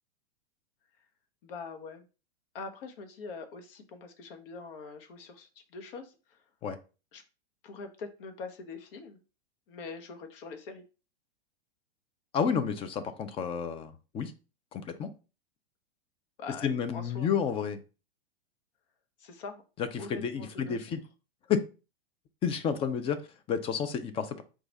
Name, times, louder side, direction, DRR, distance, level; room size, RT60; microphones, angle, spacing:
voice 1, 1.4-2.1 2.5-6.4 7.1-7.2 7.6-9.2 9.7-10.8 16.4-17.3 19.2-19.6 20.0-21.0, left 4 dB, 60° left, 7 dB, 1.0 m, -43 dB
voice 2, 12.3-14.3 14.7-15.1 16.6-17.8 19.8-21.0 21.5-21.6 22.4-24.4, left 7 dB, 20° left, 11 dB, 0.4 m, -31 dB
4.6 x 2.4 x 4.0 m, 0.33 s
hypercardioid pair, 125°, 31 cm